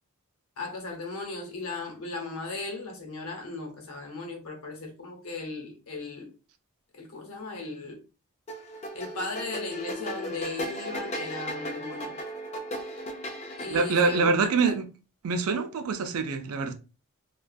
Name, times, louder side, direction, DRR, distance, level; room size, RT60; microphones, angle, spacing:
voice 1, 0.6-6.3 6.9-8.0 8.9-12.2 13.6-14.8, left 3 dB, 75° left, 0.8 m, -37 dB
sound 1, 8.5-14.1, equal, 30° left, 0.4 m, -36 dB
voice 2, 13.7-14.8 15.2-16.7, right 4 dB, 80° right, 0.4 m, -25 dB
2.5 x 2.3 x 2.3 m
head